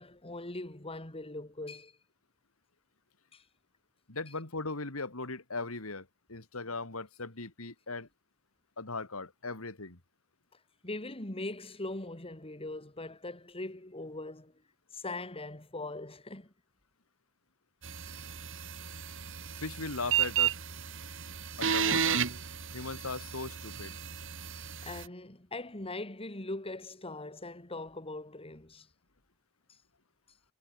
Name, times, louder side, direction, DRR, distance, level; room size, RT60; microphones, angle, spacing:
voice 1, 0.0-1.9 3.3-3.4 10.8-14.5 14.9-16.5 24.8-28.9, left 2 dB, 25° left, 3.1 m, -41 dB
voice 2, 4.1-8.1 8.8-10.0 19.6-20.6 21.6-22.2 22.7-24.0, left 3 dB, 85° left, 2.9 m, -38 dB
sound 1, 17.8-25.1, right 8 dB, 65° right, 3.5 m, -33 dB
head